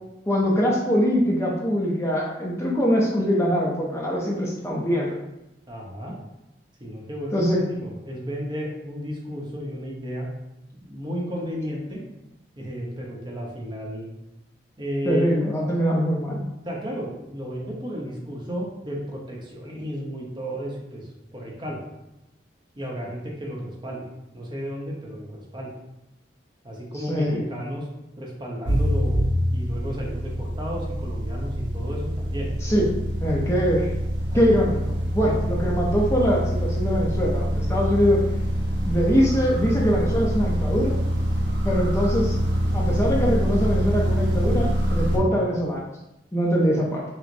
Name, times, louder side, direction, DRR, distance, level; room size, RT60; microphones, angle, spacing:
voice 1, 0.3-5.1 7.3-7.6 15.1-16.4 27.1-27.4 32.6-32.9 33.2-33.9 34.3-38.2 38.8-41.0 41.6-42.4 42.7-45.8 46.3-47.0, equal, 15° left, -3 dB, 0.5 m, -23 dB
voice 2, 5.7-6.1 6.8-10.3 10.7-12.0 12.6-14.1 14.8-15.3 16.6-21.8 22.8-24.1 24.3-25.7 26.6-27.9 28.2-29.2 29.5-32.5 33.2-33.7 34.3-34.6 35.2-35.3, equal, 25° right, -2 dB, 0.7 m, -33 dB
sound 1, 28.6-45.2, equal, 80° right, 0.8 m, -25 dB
5.9 x 2.1 x 2.6 m, 0.91 s
head